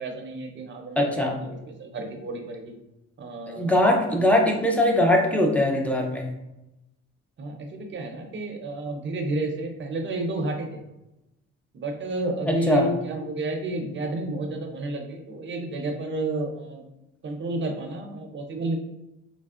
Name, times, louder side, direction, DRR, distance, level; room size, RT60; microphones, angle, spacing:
voice 1, 0.0-2.8 3.2-3.7 4.0-4.3 7.4-10.8 11.7-16.9 17.2-18.8, right 2 dB, 40° right, 3 dB, 0.6 m, -31 dB
voice 2, 1.0-1.4 3.5-6.3 12.7-12.9, left 1 dB, 5° left, 1 dB, 0.5 m, -21 dB
3.3 x 2.0 x 2.4 m, 0.92 s
cardioid pair, 90°, 30 cm